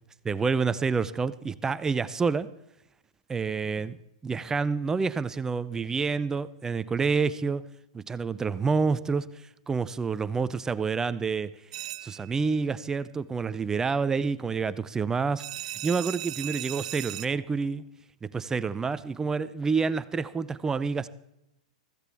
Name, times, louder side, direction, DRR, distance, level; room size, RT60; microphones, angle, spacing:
voice 1, 0.2-2.5 3.3-4.0 4.2-7.7 7.9-9.3 9.7-11.5 12.0-15.4 15.8-17.8 18.2-21.1, right 5 dB, 15° right, 0.5 m, -28 dB
sound 1, 11.7-12.5 15.4-17.3, right 14 dB, 65° right, 0.4 m, -37 dB
15.0 x 15.0 x 3.5 m
hypercardioid pair, 120°, 4 cm